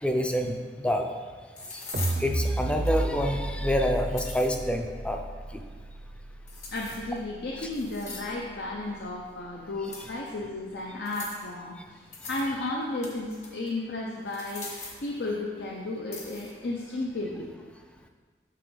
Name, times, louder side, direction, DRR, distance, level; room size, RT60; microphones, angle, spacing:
voice 1, 0.0-1.1 1.7-1.8 2.2-5.2 5.5-5.6 7.6-7.7 10.1-10.2, equal, 5° left, 3 dB, 0.4 m, -27 dB
sound 1, 0.6-0.7 1.6-2.2 2.8-3.2 3.9-4.5 6.5-7.2 7.7-8.4 9.8-10.3 11.1-11.5 12.1-12.5 12.8-13.7 14.3-15.1 16.1-16.5, left 4 dB, 40° left, 1.2 m, -41 dB
sound 2, 1.9-8.2, right 1 dB, 50° right, 0.5 m, -33 dB
voice 2, 6.7-12.0 12.3-14.7 15.0-17.5, left 2 dB, 75° left, -2 dB, 0.7 m, -33 dB
7.5 x 6.1 x 3.8 m, 1.5 s
head